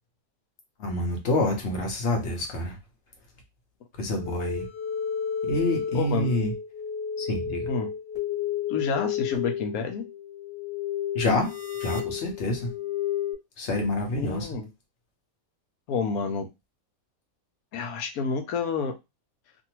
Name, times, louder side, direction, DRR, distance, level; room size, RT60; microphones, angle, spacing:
voice 1, 0.8-2.8 4.0-4.7 5.5-6.5 7.2-7.6 11.1-11.5 11.8-12.7 13.6-14.5, left 1 dB, 55° left, 2 dB, 1.1 m, -27 dB
sound 1, 4.2-13.3, left 8 dB, 20° left, 1.3 m, -32 dB
voice 2, 5.9-6.3 7.7-7.9 8.7-10.0 14.2-14.7 15.9-16.5 17.7-19.0, left 5 dB, 85° left, 5 dB, 1.1 m, -29 dB
2.6 x 2.6 x 2.9 m, 0.23 s
omnidirectional pair, 1.5 m